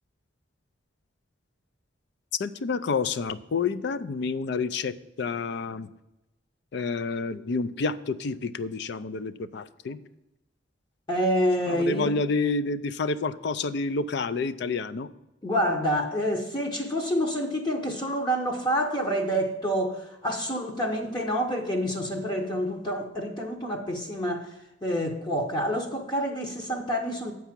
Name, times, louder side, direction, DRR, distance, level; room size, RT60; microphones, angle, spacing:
voice 1, 2.4-5.9 6.7-10.0 11.7-15.1, left 4 dB, 60° left, 0.4 m, -29 dB
voice 2, 11.1-12.2 15.4-24.5 24.8-27.3, equal, 25° left, 0.8 m, -27 dB
8.1 x 4.7 x 7.4 m
head